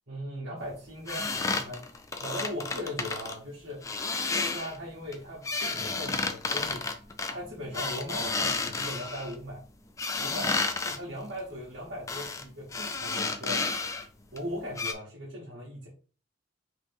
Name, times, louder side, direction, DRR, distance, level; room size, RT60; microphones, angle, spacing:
voice 1, 0.1-1.8 2.2-3.9 4.3-6.9 7.3-9.6 10.2-10.6 10.8-13.7 14.3-15.9, equal, 80° right, -6 dB, 1.3 m, -39 dB
sound 1, 1.1-3.4 3.8-4.8 5.1-9.3 10.0-11.0 12.1-12.4 12.7-14.1 14.4-14.5 14.8-14.9, left 4 dB, 15° left, 0.3 m, -31 dB
3.1 x 2.9 x 3.5 m, 0.39 s
head